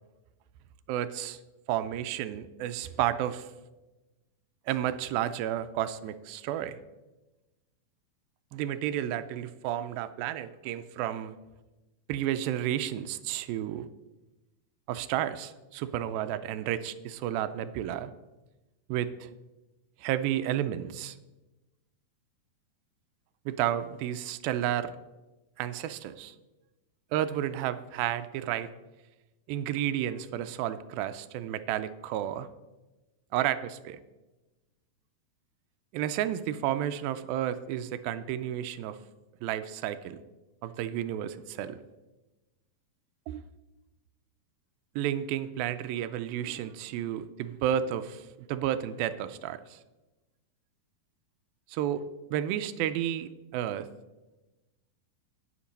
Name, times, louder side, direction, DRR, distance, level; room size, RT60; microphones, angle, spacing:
voice 1, 0.9-1.4 1.7-3.5 4.7-6.8 8.5-11.4 12.1-13.9 14.9-18.1 18.9-19.3 20.0-21.2 23.5-24.9 25.6-26.4 27.1-28.7 29.5-32.5 33.3-34.0 35.9-39.0 39.4-40.2 40.6-41.8 43.3-43.4 45.0-49.8 51.7-52.0 52.3-53.9, right 11 dB, 85° right, 11 dB, 2.3 m, -31 dB
10.0 x 9.0 x 5.2 m, 1.1 s
omnidirectional pair, 4.2 m